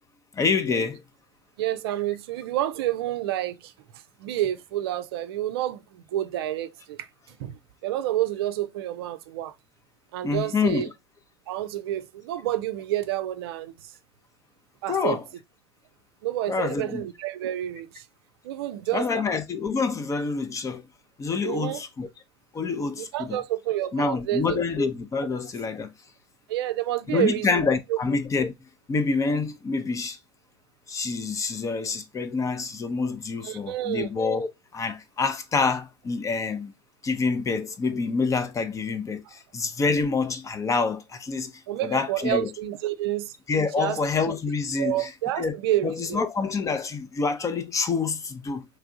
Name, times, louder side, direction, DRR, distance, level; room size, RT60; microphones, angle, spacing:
voice 1, 0.3-1.0 10.2-10.9 14.9-15.3 16.5-17.0 18.9-20.9 21.2-22.1 22.5-23.4 23.9-25.9 27.1-28.5 28.9-30.2 30.9-36.7 37.0-42.6 43.5-45.5 45.8-48.7, left 4 dB, 20° left, 0.6 m, -27 dB
voice 2, 1.6-3.7 4.2-7.1 7.4-9.5 10.1-10.9 11.5-13.9 14.8-15.2 16.2-18.1 18.4-19.3 21.4-21.8 23.0-24.6 26.5-27.6 27.9-28.0 33.4-34.1 41.7-43.3 43.8-44.0 44.8-46.2, right 13 dB, 60° right, 0.5 m, -29 dB
3.4 x 3.3 x 3.7 m
figure-of-eight pair, 80°, 14 cm